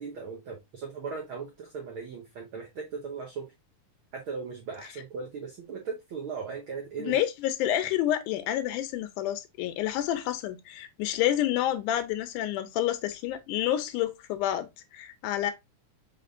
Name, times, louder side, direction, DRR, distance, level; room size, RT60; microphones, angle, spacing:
voice 1, 0.0-3.5 4.1-7.2, right 5 dB, 75° right, 1.2 m, -38 dB
voice 2, 7.0-14.7 14.9-15.5, left 12 dB, 85° left, 2.1 m, -29 dB
4.9 x 3.6 x 2.5 m
omnidirectional pair, 3.6 m